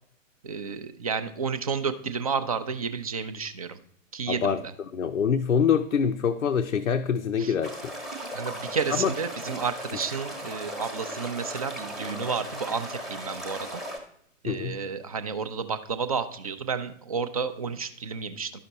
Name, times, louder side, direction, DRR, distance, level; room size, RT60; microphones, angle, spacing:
voice 1, 0.4-3.8 4.1-4.6 7.4-7.5 8.3-13.7 14.4-18.5, right 5 dB, 30° right, 11 dB, 0.4 m, -31 dB
voice 2, 4.3-4.6 4.9-7.9 8.9-9.1 14.5-14.8, left 7 dB, 80° left, 6 dB, 0.6 m, -25 dB
sound 1, 7.6-14.0, equal, ahead, 0.8 m, -37 dB
11.5 x 5.8 x 4.0 m, 0.68 s
figure-of-eight pair, 120°, 39 cm